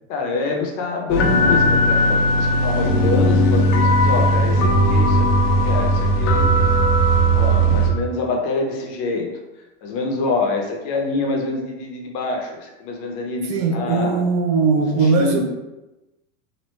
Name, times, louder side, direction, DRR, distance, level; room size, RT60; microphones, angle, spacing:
voice 1, 0.1-6.7 7.3-9.3 9.8-14.2 15.0-15.4, left 3 dB, 45° left, 2 dB, 0.7 m, -26 dB
sound 1, 1.1-7.9, right 1 dB, 90° left, 0.8 m, -17 dB
voice 2, 13.5-15.4, right 4 dB, 40° right, 2 dB, 0.5 m, -19 dB
3.1 x 2.6 x 3.1 m, 1.0 s
supercardioid pair, 150°, 37 cm